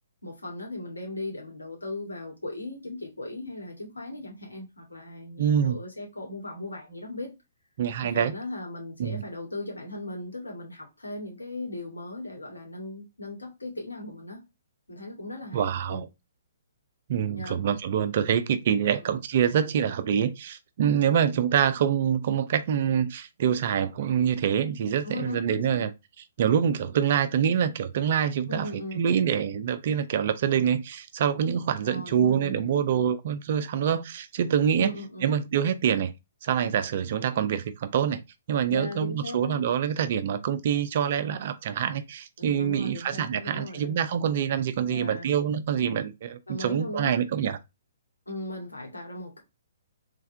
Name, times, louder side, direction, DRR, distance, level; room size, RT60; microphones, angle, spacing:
voice 1, 0.2-7.3 8.0-14.4 14.9-16.0 17.3-17.6 25.0-25.8 28.5-29.3 31.8-32.7 34.8-35.3 38.7-39.6 42.4-44.0 44.9-45.3 46.5-47.2 48.3-49.4, left 2 dB, 85° left, 2.2 m, -38 dB
voice 2, 5.4-5.8 7.8-8.3 9.0-9.2 15.5-16.1 17.1-25.9 26.4-28.7 29.0-34.9 35.2-36.1 36.4-38.2 38.5-47.6, right 8 dB, 50° right, 0.6 m, -25 dB
3.6 x 3.5 x 3.4 m
figure-of-eight pair, 125°, 0 cm